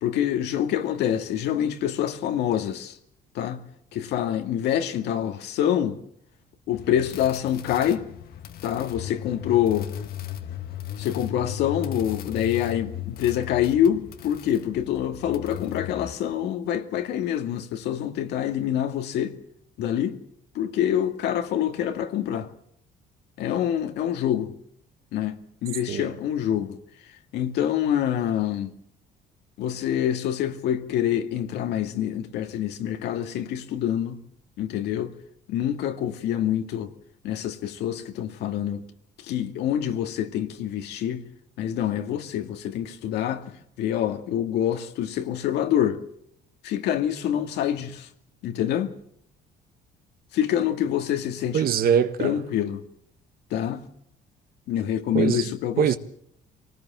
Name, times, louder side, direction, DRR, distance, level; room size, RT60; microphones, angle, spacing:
voice 1, 0.0-3.0 3.3-3.6 3.9-6.0 6.7-8.0 8.6-9.9 11.0-19.4 19.8-20.2 20.5-22.5 23.4-24.5 25.1-26.8 27.3-28.7 29.6-34.2 34.6-35.1 35.5-36.9 37.2-38.8 39.2-41.3 41.6-43.4 43.8-46.0 46.6-48.1 48.4-48.9 50.3-51.6 52.2-52.8 53.5-53.8 54.7-56.0, left 10 dB, 80° left, 2.3 m, -26 dB
sound 1, 6.7-16.1, left 11 dB, 65° left, 1.6 m, -37 dB
voice 2, 51.5-52.3 55.1-55.5 55.8-56.0, right 8 dB, 60° right, 1.6 m, -22 dB
24.5 x 19.0 x 7.6 m
cardioid pair, 110°, 17 cm